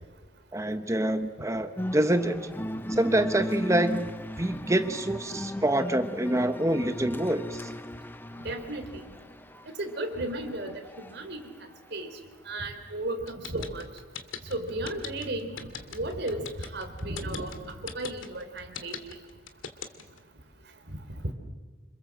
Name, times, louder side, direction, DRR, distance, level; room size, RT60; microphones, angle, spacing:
voice 1, 0.5-2.4 2.9-4.1 4.4-7.7, right 1 dB, 15° right, 9 dB, 1.0 m, -26 dB
sound 1, 1.8-11.2, equal, 10° left, 0.8 m, -37 dB
voice 2, 8.4-9.0 9.8-10.7 11.0-11.4 11.9-12.1 12.5-13.8 14.5-15.6 15.9-16.4 16.7-17.5 17.8-19.0, right 1 dB, 55° right, 6 dB, 3.7 m, -34 dB
sound 2, 13.3-20.2, left 7 dB, 80° left, 2.1 m, -39 dB
27.5 x 26.0 x 7.7 m, 1.3 s
head